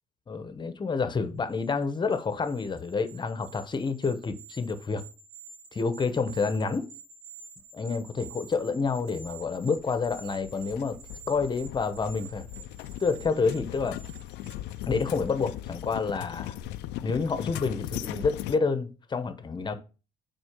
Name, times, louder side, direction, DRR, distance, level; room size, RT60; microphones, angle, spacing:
voice 1, 0.3-5.0 5.7-6.9 7.7-11.0 11.3-12.5 13.0-14.0 14.9-16.6 17.0-19.7, left 4 dB, 25° left, 0.9 m, -28 dB
sound 1, 1.5-16.1 16.5-16.6, right 5 dB, 80° right, 2.6 m, -50 dB
sound 2, 9.0-18.6, left 14 dB, 90° left, 0.5 m, -39 dB
6.2 x 4.3 x 6.0 m
cardioid pair, 110°, 17 cm